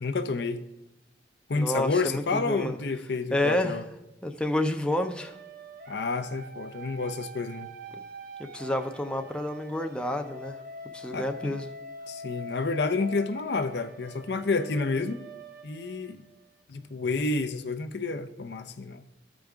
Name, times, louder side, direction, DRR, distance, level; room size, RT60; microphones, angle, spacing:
voice 1, 0.0-0.6 1.5-3.8 5.9-7.7 11.1-11.5 12.1-15.2 15.6-16.2 16.7-19.1, left 3 dB, 65° left, 0.6 m, -29 dB
voice 2, 1.5-2.8 3.3-3.8 4.2-5.4 8.4-10.6 10.9-11.7, left 1 dB, 5° left, 0.5 m, -29 dB
sound 1, 4.8-16.6, equal, 50° right, 0.8 m, -44 dB
14.0 x 5.1 x 3.5 m
head